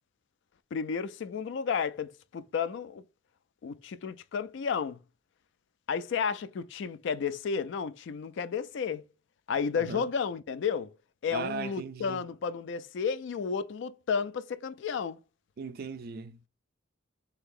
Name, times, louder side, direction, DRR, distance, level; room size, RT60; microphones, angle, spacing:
voice 1, 0.7-3.0 3.6-5.0 5.9-9.0 9.5-10.9 11.2-15.2, left 6 dB, 65° left, 0.3 m, -32 dB
voice 2, 9.7-10.1 11.3-12.2 15.6-16.5, right 5 dB, 50° right, 0.4 m, -38 dB
3.3 x 2.7 x 3.7 m
head